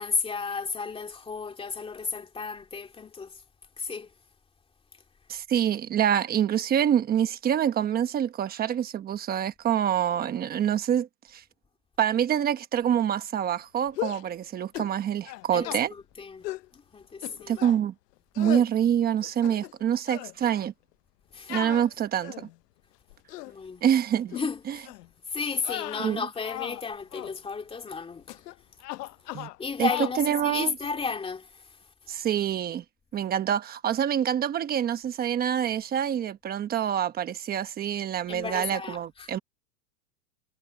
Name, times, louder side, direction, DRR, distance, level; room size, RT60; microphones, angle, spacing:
voice 1, 0.0-3.3 3.8-4.1 15.5-16.5 16.7-17.6 21.3-21.6 23.4-23.8 24.3-24.8 25.3-28.4 29.6-31.6 38.3-39.3, left 5 dB, 10° left, 2.4 m, -33 dB
voice 2, 5.3-11.4 12.0-15.9 17.5-17.9 18.4-20.7 21.5-22.5 23.8-24.3 24.7-24.8 26.0-26.3 29.3-29.5 29.8-29.9 30.2-30.8 32.1-32.8 33.1-39.4, right 9 dB, 20° right, 1.1 m, -26 dB
sound 1, 13.9-14.3 14.7-15.0 15.2-15.8 16.4-16.7 17.2-17.8 18.3-18.7 19.2-19.8 20.1-20.3 21.5-22.5 23.1-23.5 24.3-24.5 24.8-25.1 25.6-26.8 27.1-27.3 28.3-28.5 28.8-29.6 29.8-30.2, left 17 dB, 75° left, 0.9 m, -36 dB
supercardioid pair, 155°, 48 cm